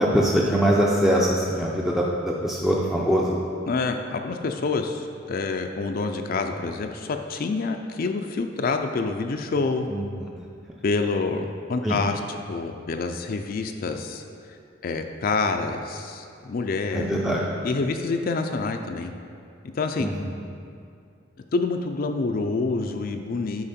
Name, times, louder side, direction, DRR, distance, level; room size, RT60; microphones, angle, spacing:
voice 1, 0.0-3.4 9.9-10.0 11.8-12.0 16.9-17.4 20.0-20.1, equal, ahead, -4 dB, 0.5 m, -22 dB
voice 2, 3.7-9.9 10.8-14.2 14.8-17.4 17.6-19.1 19.7-20.1 21.5-23.6, left 3 dB, 50° left, 5 dB, 0.4 m, -27 dB
8.8 x 5.3 x 4.2 m, 2.4 s
head